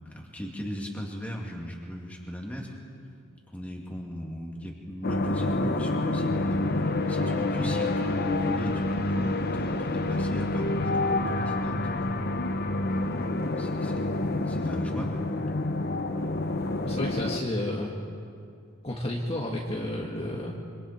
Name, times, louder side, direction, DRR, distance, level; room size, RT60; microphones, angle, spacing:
voice 1, 0.0-2.8 3.5-12.1 12.9-15.4, equal, 5° left, -1 dB, 2.6 m, -39 dB
sound 1, 5.0-17.4, left 2 dB, 50° left, 0.9 m, -28 dB
voice 2, 16.8-17.9 18.8-20.5, left 1 dB, 30° left, -2 dB, 1.7 m, -31 dB
26.0 x 25.5 x 4.4 m, 2.4 s
head